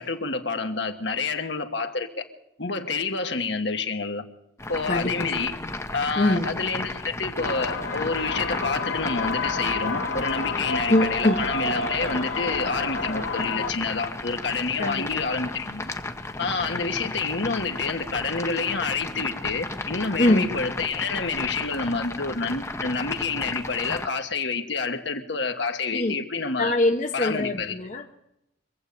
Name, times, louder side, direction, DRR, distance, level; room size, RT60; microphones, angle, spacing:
voice 1, 0.0-2.2 2.6-4.2 4.7-5.6 5.9-15.9 16.4-26.7 27.1-27.7, left 4 dB, 65° left, 1.4 m, -28 dB
sound 1, 4.6-24.1, left 2 dB, 15° left, 0.8 m, -34 dB
voice 2, 4.9-5.3 5.6-5.7 6.2-6.5 10.9-11.4 14.8-15.2 20.2-20.5 25.9-26.1 26.6-28.1, left 1 dB, 40° left, 0.9 m, -23 dB
sound 2, 7.4-13.7, left 3 dB, 85° left, 2.0 m, -30 dB
24.5 x 8.1 x 6.8 m
head